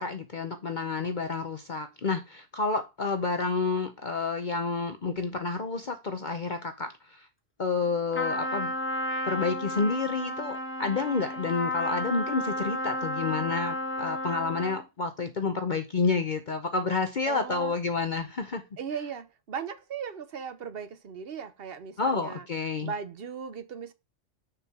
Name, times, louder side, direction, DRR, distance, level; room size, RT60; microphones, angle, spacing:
voice 1, 0.0-7.3 7.6-8.7 9.3-18.6 22.0-22.9, left 4 dB, 45° left, 0.9 m, -29 dB
Trumpet, 8.1-14.8, left 1 dB, 10° left, 1.1 m, -32 dB
voice 2, 17.3-17.7 18.8-22.5 22.8-23.9, right 7 dB, 55° right, 1.0 m, -37 dB
6.5 x 4.5 x 6.0 m
omnidirectional pair, 1.2 m